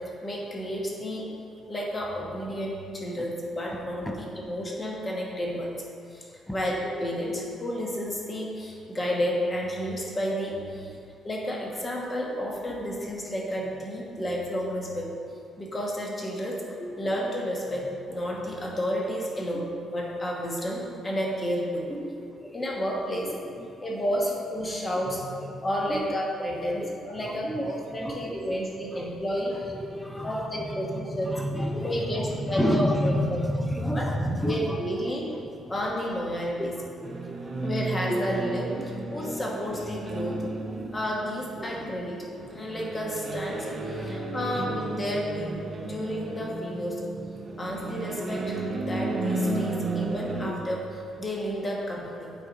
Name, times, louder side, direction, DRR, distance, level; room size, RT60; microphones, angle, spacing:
voice 1, 0.2-1.3 1.7-5.7 6.1-6.3 6.5-10.9 11.2-15.1 15.6-16.6 17.0-21.9 22.5-23.4 23.8-25.2 25.6-29.7 30.2-31.4 31.8-33.4 33.9-34.1 34.4-35.3 35.7-36.7 37.6-40.4 40.9-42.2 42.5-47.0 47.6-52.3, equal, 20° left, -2 dB, 1.1 m, -31 dB
voice 2, 21.9-22.7 23.8-23.9 24.9-25.0 25.9-26.1 26.5-26.9 27.2-27.6 28.0-28.4 28.9-29.0 29.8-30.6 30.9-34.8 35.6-35.7 37.0-37.6 38.1-38.2 38.8-38.9 39.1-39.2 40.3-40.4 40.7-40.9 41.6-41.9 42.5-42.6 43.9-44.6 45.8-46.0 47.5-47.7, equal, 5° left, 2 dB, 0.5 m, -31 dB
Drum, 25.1-26.8, left 2 dB, 50° left, 1.3 m, -45 dB
sound 1, 37.0-50.5, right 2 dB, 35° right, 0.8 m, -33 dB
8.2 x 5.0 x 3.9 m, 2.4 s
cardioid pair, 150°, 0 cm